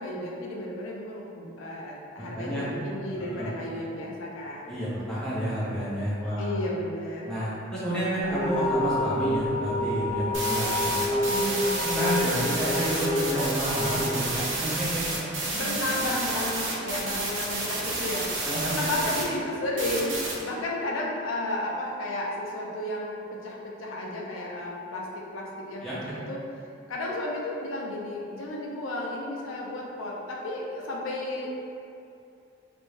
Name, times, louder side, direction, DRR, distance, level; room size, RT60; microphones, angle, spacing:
voice 1, 0.0-4.8 6.4-7.4 15.6-26.4 26.9-31.6, left 1 dB, 75° left, -2 dB, 0.5 m, -33 dB
voice 2, 2.2-2.7 3.3-3.5 4.7-6.6 7.2-11.4 11.8-15.0 15.4-15.6 18.4-18.7 25.8-26.1, right 1 dB, 5° left, -10 dB, 0.6 m, -30 dB
sound 1, 8.2-15.1, left 1 dB, 40° left, 0.8 m, -29 dB
sound 2, 10.3-19.2 19.8-20.3, right 2 dB, 65° right, 0.5 m, -30 dB
2.5 x 2.1 x 3.1 m, 2.6 s
head